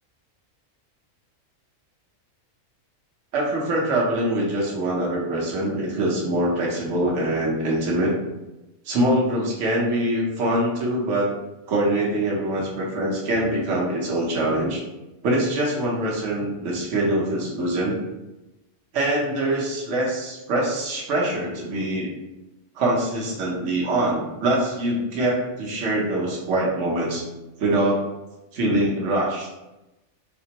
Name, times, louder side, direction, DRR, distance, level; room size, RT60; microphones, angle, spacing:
voice 1, 3.3-8.1 8.8-11.3 11.7-14.8 15.2-18.0 18.9-22.1 22.7-27.2 27.6-28.0 28.5-29.5, right 1 dB, 65° right, -3 dB, 1.1 m, -24 dB
4.2 x 2.0 x 2.8 m, 0.99 s
omnidirectional pair, 1.4 m